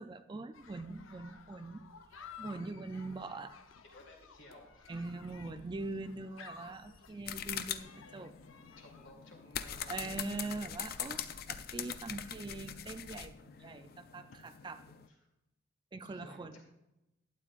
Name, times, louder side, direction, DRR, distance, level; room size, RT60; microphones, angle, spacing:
voice 1, 0.0-1.8 2.4-3.5 4.9-8.4 9.9-14.8 15.9-16.6, right 3 dB, 25° right, 9 dB, 0.4 m, -42 dB
sound 1, 0.5-9.1, left 6 dB, 90° left, 0.7 m, -54 dB
voice 2, 3.9-4.9 5.6-5.7 8.8-10.6 14.3-14.4 15.1-15.3 16.0-16.6, left 1 dB, 70° left, 0 dB, 2.5 m, -56 dB
sound 2, 7.2-15.1, left 9 dB, 50° left, 0.4 m, -43 dB
12.0 x 9.0 x 2.4 m, 0.94 s
head